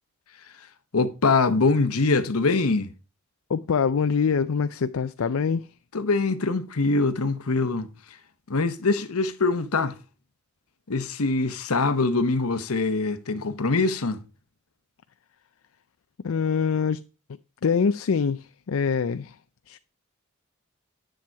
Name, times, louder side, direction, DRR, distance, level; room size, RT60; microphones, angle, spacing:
voice 1, 0.9-2.9 5.9-7.9 8.5-10.0 10.9-14.2, left 3 dB, 90° left, 1.0 m, -23 dB
voice 2, 3.5-5.7 16.2-17.0 17.6-19.4 19.7-19.8, left 6 dB, 75° left, 0.4 m, -24 dB
10.0 x 7.8 x 4.6 m
head